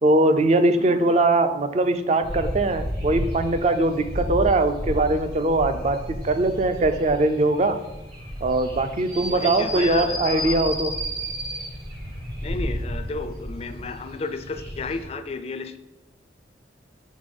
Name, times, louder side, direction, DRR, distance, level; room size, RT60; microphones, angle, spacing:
voice 1, 0.0-7.8 8.4-10.9, right 2 dB, 35° right, 9 dB, 0.4 m, -21 dB
voice 2, 0.8-1.2 9.3-10.6 12.4-15.8, left 3 dB, 30° left, 8 dB, 0.3 m, -33 dB
sound 1, 2.2-15.0, equal, 55° right, 2.2 m, -32 dB
5.3 x 4.0 x 5.2 m, 0.98 s
head